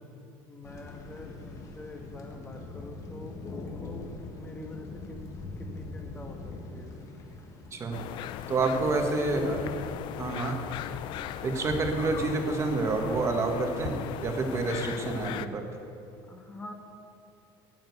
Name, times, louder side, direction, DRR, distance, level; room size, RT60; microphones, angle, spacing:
voice 1, 0.5-5.3 5.6-7.1 8.7-10.0 10.3-11.0 16.3-16.7, left 3 dB, 15° left, 2 dB, 1.4 m, -44 dB
Thunder, 0.6-10.3, left 2 dB, 30° left, 1.5 m, -43 dB
sound 1, 7.9-15.5, left 10 dB, 55° left, 0.5 m, -37 dB
voice 2, 8.5-9.6 10.2-10.6 11.4-15.6, right 3 dB, 30° right, 4 dB, 1.4 m, -28 dB
9.2 x 7.8 x 8.1 m, 2.6 s
cardioid pair, 140°, 10 cm